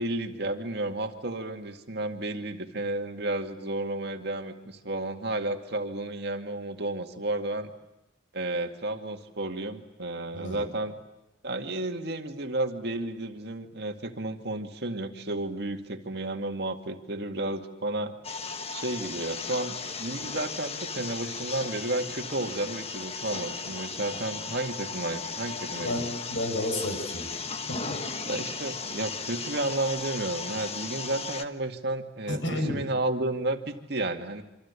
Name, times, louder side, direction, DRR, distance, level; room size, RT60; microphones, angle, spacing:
voice 1, 0.0-7.7 8.3-11.0 11.4-18.1 18.7-26.0 28.3-34.4, right 2 dB, 60° right, 4 dB, 2.2 m, -32 dB
sound 1, 18.2-31.4, left 4 dB, 35° left, 1.2 m, -36 dB
voice 2, 25.8-27.3 27.7-28.0 32.3-32.8, left 1 dB, 85° left, 6 dB, 6.8 m, -31 dB
27.5 x 25.5 x 8.4 m, 0.88 s
head